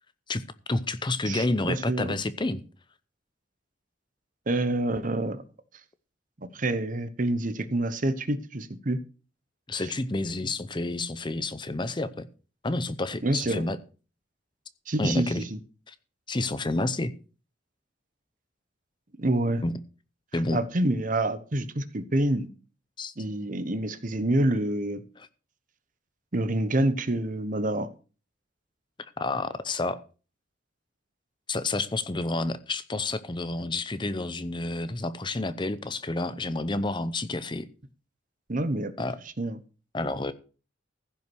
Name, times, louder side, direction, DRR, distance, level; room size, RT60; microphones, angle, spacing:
voice 1, 0.3-2.6 9.7-12.3 12.6-13.8 15.0-15.4 15.9-16.0 16.3-17.1 19.6-19.7 20.3-20.6 23.0-23.1 25.2-25.3 29.2-30.0 31.5-37.7 39.0-39.2 39.9-40.3, left 2 dB, 25° left, 13 dB, 0.7 m, -29 dB
voice 2, 1.3-2.2 4.5-5.4 6.4-9.0 9.7-9.9 13.2-13.7 14.9-15.6 19.2-19.6 20.3-22.5 23.2-25.0 26.3-27.9 38.5-38.9 39.4-39.6, right 1 dB, 40° right, 12 dB, 1.0 m, -27 dB
15.0 x 5.8 x 6.3 m, 0.36 s
head